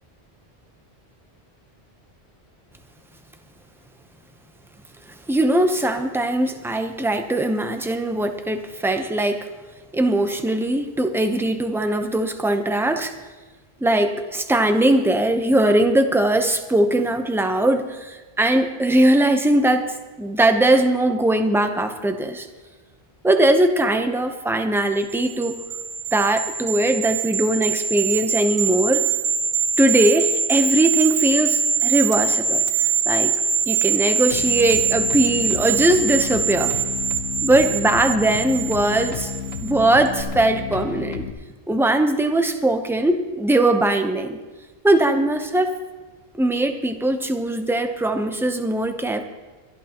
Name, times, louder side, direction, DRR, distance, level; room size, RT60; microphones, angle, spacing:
voice 1, 5.3-9.5 9.9-13.1 13.8-19.9 20.2-22.5 23.2-25.6 26.1-29.0 29.8-32.6 33.1-33.3 33.7-36.7 37.4-39.3 39.6-41.2 41.7-44.4 44.8-45.7 46.4-49.2, right 1 dB, 5° right, 6 dB, 0.7 m, -20 dB
sound 1, 25.1-39.7 40.1-40.2, right 6 dB, 65° right, 1.2 m, -23 dB
sound 2, 34.3-41.3, left 7 dB, 85° left, 1.2 m, -32 dB
24.5 x 11.0 x 2.9 m, 1.2 s
omnidirectional pair, 1.1 m